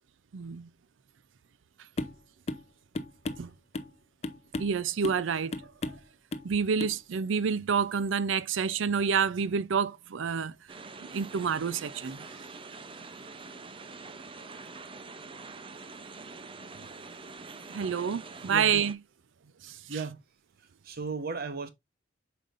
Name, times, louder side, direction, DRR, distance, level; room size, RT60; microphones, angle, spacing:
voice 1, 0.3-0.7 3.4-3.5 4.6-5.6 6.4-10.5 11.0-12.2 17.7-19.0 19.6-19.8, right 6 dB, 80° right, 0.5 m, -28 dB
sound 1, 2.0-2.2 2.5-2.7 3.0-3.9 4.2-4.8 5.0-5.3 5.5-6.1 6.3-6.5 6.8-7.0, left 2 dB, 35° left, 0.6 m, -35 dB
sound 2, 10.7-18.9, right 4 dB, 30° right, 0.6 m, -45 dB
voice 2, 18.5-18.8 19.9-20.2 20.6-21.7, right 4 dB, 55° right, 0.9 m, -36 dB
7.5 x 5.1 x 2.5 m
head